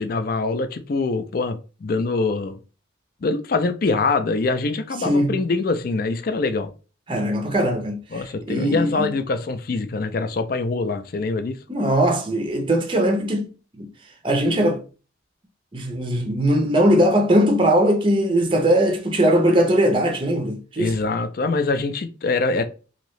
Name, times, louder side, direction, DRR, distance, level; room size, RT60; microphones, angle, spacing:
voice 1, 0.0-2.6 3.2-6.7 8.1-11.6 20.8-22.6, left 3 dB, 45° left, 0.4 m, -24 dB
voice 2, 5.0-5.4 7.1-9.1 11.7-13.5 13.8-13.9 14.2-14.8 15.7-20.9, equal, 25° right, 0.5 m, -20 dB
2.9 x 2.6 x 3.0 m
head